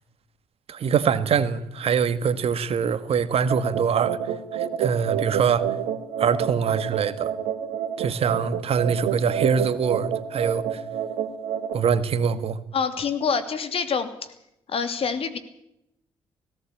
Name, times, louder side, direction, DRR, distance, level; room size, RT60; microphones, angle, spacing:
voice 1, 0.7-5.7 6.2-7.3 8.0-10.8 11.7-12.6, right 6 dB, 60° right, 1.6 m, -24 dB
sound 1, 3.5-11.7, right 9 dB, 80° right, 1.9 m, -29 dB
voice 2, 12.7-14.3 14.7-15.4, left 6 dB, 60° left, 2.9 m, -26 dB
18.0 x 17.0 x 8.6 m
supercardioid pair, 50°, 11 cm